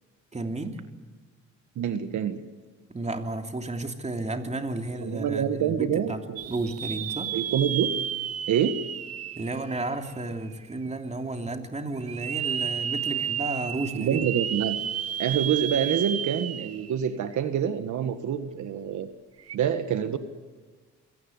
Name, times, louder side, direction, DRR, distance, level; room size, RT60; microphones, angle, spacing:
voice 1, 0.3-0.8 2.9-7.3 9.4-14.2, right 2 dB, 20° right, 5 dB, 3.0 m, -32 dB
voice 2, 1.7-2.4 5.0-6.5 7.3-7.9 8.5-8.7 13.9-14.8 15.2-19.1 19.5-20.2, right 9 dB, 75° right, 9 dB, 1.6 m, -26 dB
sound 1, 6.4-10.3 10.8-10.9 12.0-17.0 17.3-17.4 19.4-19.6, right 9 dB, 55° right, 1.0 m, -32 dB
26.5 x 18.0 x 8.0 m, 1.4 s
cardioid pair, 90°, 30 cm